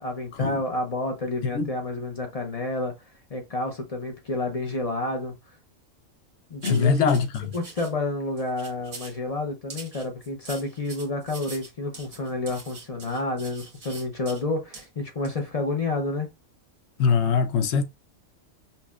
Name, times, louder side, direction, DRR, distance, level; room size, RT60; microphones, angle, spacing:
voice 1, 0.0-2.9 3.3-5.3 6.5-7.1 7.5-16.3, left 2 dB, 40° left, 0.5 m, -29 dB
voice 2, 6.6-7.5 17.0-17.8, left 6 dB, 65° left, 0.8 m, -22 dB
sound 1, 6.6-7.9 8.4-9.2 9.7-14.4 14.7-14.9 15.2-15.4, right 3 dB, 80° right, 1.8 m, -43 dB
5.5 x 2.1 x 2.3 m
omnidirectional pair, 1.4 m